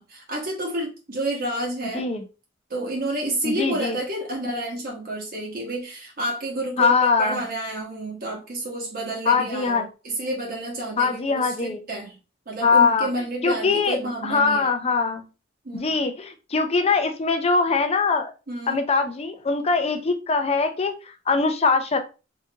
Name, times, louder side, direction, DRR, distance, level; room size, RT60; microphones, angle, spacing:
voice 1, 0.0-2.1 2.7-12.2 12.5-14.7 15.6-16.0 18.5-18.8, right 1 dB, 50° right, -2 dB, 1.0 m, -30 dB
voice 2, 3.4-4.0 6.8-7.4 9.3-9.9 11.0-11.8 12.6-13.1 13.4-14.0 14.2-15.2 15.7-18.3 18.7-22.0, left 4 dB, 30° left, 6 dB, 0.5 m, -22 dB
3.8 x 2.6 x 2.7 m, 0.31 s
head